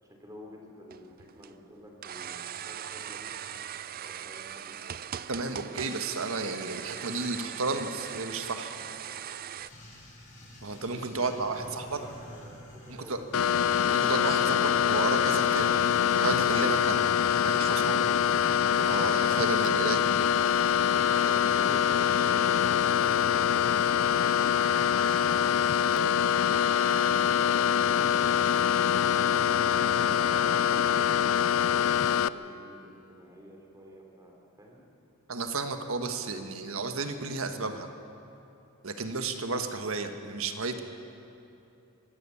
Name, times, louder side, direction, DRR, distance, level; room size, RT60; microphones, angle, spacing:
voice 1, 0.0-3.3 4.0-4.8 11.1-13.6 29.4-34.8, equal, 15° right, 0 dB, 3.4 m, -50 dB
sound 1, 0.9-9.7, right 9 dB, 40° right, 0.4 m, -40 dB
voice 2, 5.3-8.7 10.6-12.0 12.9-13.2 13.9-15.7 16.1-17.1 17.4-18.1 18.8-20.0 35.3-37.9 38.8-40.8, right 3 dB, 75° right, 7 dB, 1.4 m, -32 dB
sound 2, 9.6-23.7, equal, 35° left, 6.8 m, -51 dB
sound 3, 13.3-32.3, left 8 dB, 70° left, 0.4 m, -24 dB
24.5 x 13.0 x 8.5 m, 2.7 s
head